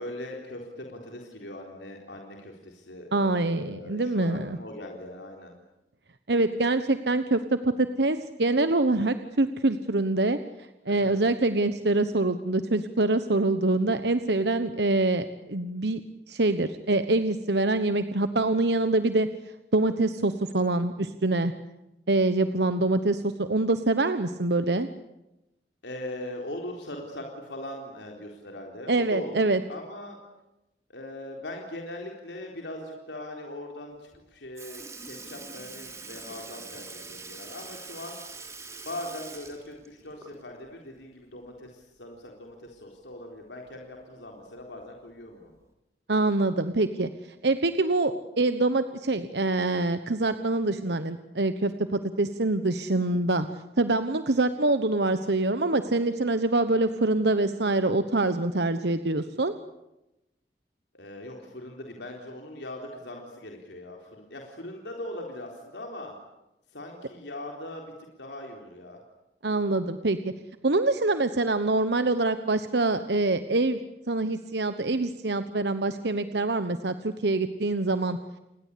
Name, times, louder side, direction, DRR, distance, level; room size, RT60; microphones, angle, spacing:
voice 1, 0.0-5.5 10.9-11.1 18.5-18.7 25.8-30.2 30.9-38.2 38.8-45.5 53.0-53.1 60.9-66.1 66.7-67.8 68.2-69.0, left 1 dB, 85° left, 1 dB, 4.0 m, -40 dB
voice 2, 3.1-4.6 6.3-10.4 10.9-16.0 16.3-19.3 19.7-21.5 22.1-24.9 28.9-29.6 46.1-53.5 53.8-59.5 69.4-70.3 70.6-73.8 74.1-78.2, right 2 dB, 70° right, 10 dB, 1.2 m, -25 dB
Sink (filling or washing) / Liquid, 34.1-34.2 34.6-40.7 41.0-41.1 42.7-42.8 43.7-43.8 44.6-44.8 45.6-45.7, right 4 dB, 15° right, 3.3 m, -44 dB
29.5 x 21.0 x 8.5 m, 0.92 s
head